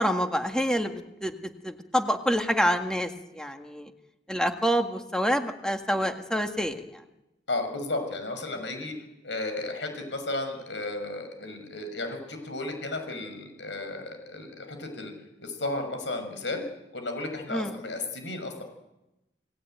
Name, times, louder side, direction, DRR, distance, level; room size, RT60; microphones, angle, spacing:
voice 1, 0.0-3.9 4.3-7.0 17.5-17.8, equal, 5° left, 5 dB, 1.9 m, -27 dB
voice 2, 7.5-8.9 9.2-15.1 15.4-16.6 16.9-18.6, left 2 dB, 85° left, 6 dB, 6.4 m, -34 dB
29.5 x 19.0 x 9.3 m, 0.95 s
head